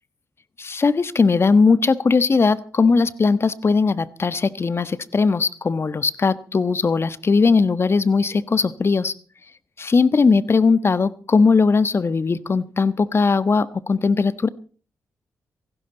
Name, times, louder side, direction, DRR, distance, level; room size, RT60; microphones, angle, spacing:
voice 1, 0.6-9.1 9.8-14.5, left 4 dB, 45° left, 15 dB, 1.2 m, -19 dB
18.0 x 15.5 x 4.0 m, 0.39 s
supercardioid pair, 50°, 6 cm